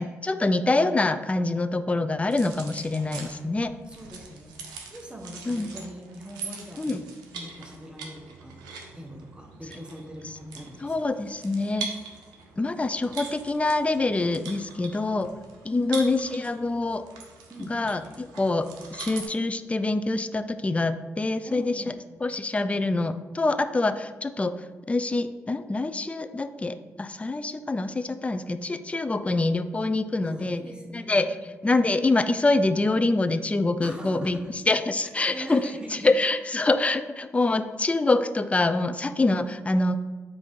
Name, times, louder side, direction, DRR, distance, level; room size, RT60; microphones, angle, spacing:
voice 1, 0.0-3.7 5.5-5.7 6.8-7.0 10.8-11.9 12.6-15.3 15.6-17.1 17.7-21.9 22.2-24.5 24.9-30.6 30.9-31.3 31.6-34.4 34.7-35.6 35.9-40.0, left 2 dB, 20° left, 10 dB, 0.3 m, -25 dB
sound 1, 2.3-19.3, right 5 dB, 80° right, 0.5 m, -42 dB
voice 2, 3.9-7.0 7.3-11.1 17.5-18.0 21.4-22.2 30.2-31.5 33.8-34.6 35.1-36.1 37.4-37.5, equal, 15° right, 1 dB, 0.8 m, -42 dB
3.6 x 2.5 x 4.6 m, 1.4 s
hypercardioid pair, 45°, 7 cm